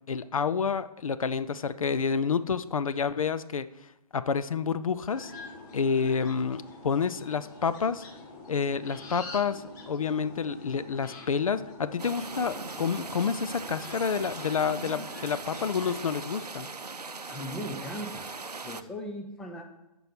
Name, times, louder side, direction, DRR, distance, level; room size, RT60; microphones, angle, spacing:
voice 1, 0.1-3.7 4.1-5.3 5.7-8.0 8.5-16.7, left 6 dB, 60° left, 13 dB, 0.4 m, -29 dB
sound 1, 5.1-16.2, left 3 dB, 30° left, 1.2 m, -46 dB
sound 2, 12.0-18.8, right 4 dB, 90° right, 0.5 m, -40 dB
voice 2, 17.3-18.3 18.6-19.6, equal, 5° left, 2 dB, 0.5 m, -38 dB
7.3 x 5.3 x 6.8 m, 0.95 s
figure-of-eight pair, 135°, 20 cm